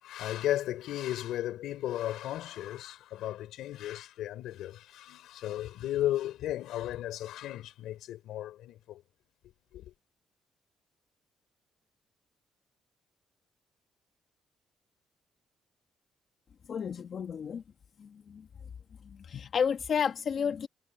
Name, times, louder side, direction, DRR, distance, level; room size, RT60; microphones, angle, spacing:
voice 1, 0.0-9.0 9.7-9.9, left 13 dB, 85° left, 4.9 m, -35 dB
voice 2, 16.7-17.6 18.0-18.5 19.2-20.7, left 7 dB, 55° left, 1.4 m, -31 dB
cardioid pair, 90°, 0 cm